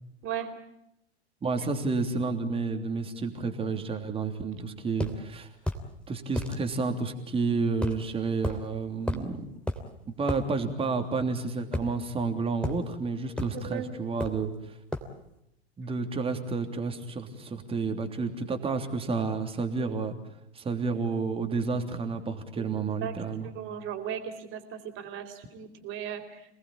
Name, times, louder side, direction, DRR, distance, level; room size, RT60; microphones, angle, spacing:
voice 1, 1.4-5.5 6.1-9.4 10.2-14.5 15.8-20.1 20.5-23.5, right 4 dB, 15° right, 6 dB, 3.3 m, -30 dB
sound 1, 5.0-5.2 5.7-5.9 6.4-6.6 7.8-8.0 8.4-8.6 9.1-9.3 9.7-9.8 10.3-10.4 11.7-12.3 12.6-12.8 13.4-13.6 14.2-14.5 14.9-15.1, left 1 dB, 5° left, 3.1 m, -32 dB
voice 2, 23.5-26.2, right 10 dB, 35° right, 7 dB, 4.2 m, -36 dB
27.5 x 19.5 x 8.8 m, 0.81 s
figure-of-eight pair, 100°, 33 cm